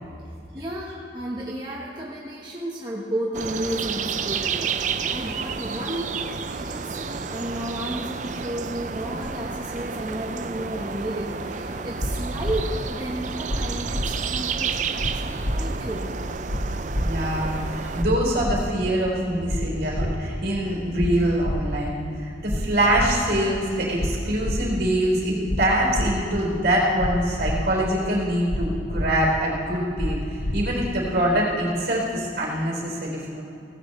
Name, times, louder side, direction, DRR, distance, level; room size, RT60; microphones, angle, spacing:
voice 1, 0.5-16.2, right 1 dB, 25° right, -4 dB, 1.2 m, -33 dB
sound 1, 3.3-18.1, right 5 dB, 45° right, 0.5 m, -31 dB
sound 2, 12.0-12.1 12.4-12.6 13.5-13.6 13.9-14.1 15.0-15.1 15.4-15.6 16.5-16.6 16.9-17.1 18.0-18.1 18.4-18.6 19.5-19.6 19.9-20.1 21.0-21.1 21.4-21.6 22.5-22.6 22.9-23.1 24.0-24.1 24.4-24.6 25.5-25.6 25.9-26.1 27.0-27.1 27.4-27.6 28.5-28.6 28.9-29.1 30.0-30.1 30.4-30.6, left 1 dB, 60° left, 1.3 m, -26 dB
voice 2, 17.0-33.4, right 1 dB, 65° right, -2 dB, 3.9 m, -24 dB
17.0 x 16.5 x 3.2 m, 2.6 s
head